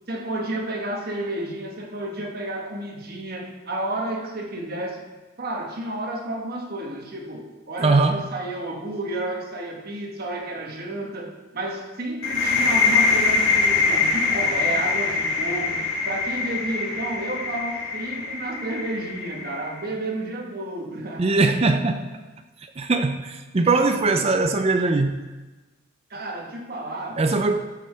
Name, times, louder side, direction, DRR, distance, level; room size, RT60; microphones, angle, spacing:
voice 1, 0.1-5.0 5.4-21.5 21.8-22.0 26.1-27.2, right 1 dB, 45° right, 1 dB, 1.3 m, -31 dB
voice 2, 7.8-8.2 21.2-22.1 22.8-25.2 27.2-27.7, right 3 dB, 30° right, 7 dB, 0.4 m, -21 dB
sound 1, 12.2-19.8, left 4 dB, 70° left, 1.9 m, -23 dB
14.5 x 5.8 x 4.3 m, 1.2 s
head